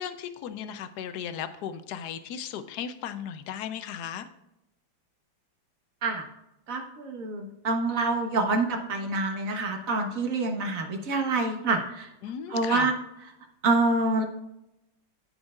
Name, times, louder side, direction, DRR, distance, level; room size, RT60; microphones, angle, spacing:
voice 1, 0.0-4.2 12.2-12.9, left 8 dB, 70° left, 10 dB, 1.0 m, -36 dB
voice 2, 6.7-11.8 12.5-12.9 13.6-14.2, right 3 dB, 50° right, 3 dB, 1.4 m, -26 dB
14.0 x 5.4 x 2.4 m, 0.87 s
omnidirectional pair, 2.2 m